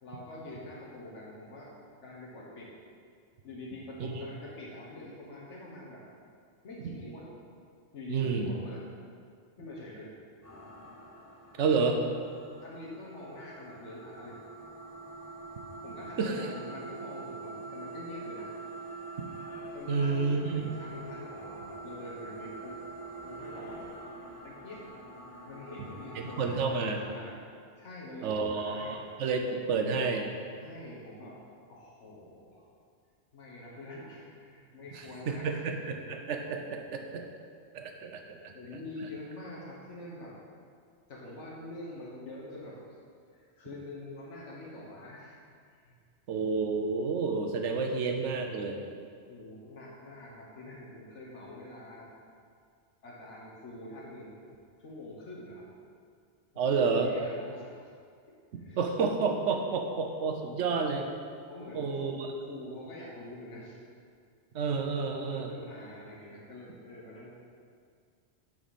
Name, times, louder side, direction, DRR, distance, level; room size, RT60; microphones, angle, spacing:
voice 1, 0.0-1.7 2.0-2.7 3.4-6.0 6.6-7.3 7.9-8.8 9.6-10.1 12.6-14.4 15.8-18.6 19.7-22.8 23.2-23.9 24.4-24.9 25.4-27.4 27.8-29.2 30.6-31.4 31.7-32.7 33.3-35.7 38.5-40.4 41.1-42.8 43.3-45.4 45.7-46.0 49.3-52.1 53.0-54.3 54.8-55.7 56.5-57.9 58.3-58.8 61.5-63.8 65.1-67.4, left 1 dB, 85° left, -5 dB, 1.5 m, -45 dB
voice 2, 8.1-8.6 11.6-12.0 16.2-16.5 19.9-20.7 26.1-27.0 28.2-30.3 35.3-37.2 37.7-38.5 46.3-48.8 56.6-57.1 58.8-61.1 61.7-62.1 64.5-65.5, right 4 dB, 90° right, 4 dB, 1.1 m, -30 dB
sound 1, 10.4-26.8, right 2 dB, 15° left, 0.9 m, -45 dB
9.2 x 4.9 x 4.1 m, 2.2 s
omnidirectional pair, 1.2 m